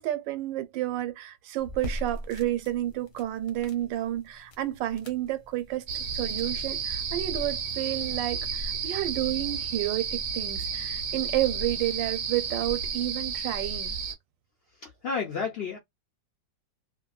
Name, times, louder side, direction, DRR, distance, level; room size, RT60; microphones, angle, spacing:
voice 1, 0.0-5.9 6.1-13.9, right 14 dB, 85° right, 1.3 m, -30 dB
sound 1, 1.6-7.1, equal, 55° left, 0.9 m, -42 dB
sound 2, 5.9-14.1, right 6 dB, 55° right, 0.7 m, -32 dB
voice 2, 14.8-15.8, left 5 dB, 85° left, 0.5 m, -31 dB
2.7 x 2.5 x 2.3 m
omnidirectional pair, 2.0 m